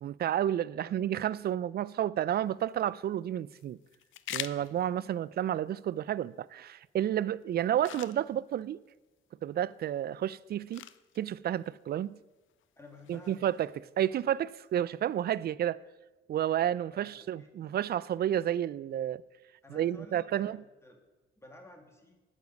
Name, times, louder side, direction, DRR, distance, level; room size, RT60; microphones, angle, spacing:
voice 1, 0.0-3.8 4.3-8.8 9.4-10.9 11.2-12.2 13.1-13.7 14.0-15.8 16.3-19.2 19.7-20.6, right 11 dB, 50° right, 0.4 m, -31 dB
sound 1, 2.4-15.5, left 12 dB, 75° left, 0.5 m, -49 dB
voice 2, 12.8-13.5 16.9-17.7 19.6-20.5 20.8-21.0 21.4-22.1, left 2 dB, 15° left, 2.1 m, -53 dB
9.1 x 7.1 x 8.3 m
cardioid pair, 105°, 20 cm